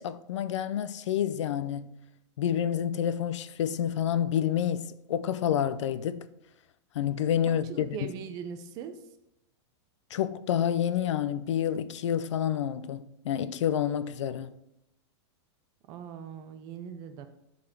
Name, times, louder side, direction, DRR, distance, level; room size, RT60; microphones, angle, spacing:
voice 1, 0.0-1.9 2.4-6.3 6.9-8.1 10.1-14.5, left 9 dB, 85° left, 0.6 m, -29 dB
voice 2, 7.5-8.9 15.9-17.3, right 7 dB, 25° right, 0.7 m, -40 dB
10.5 x 4.2 x 5.7 m
supercardioid pair, 175°, 15 cm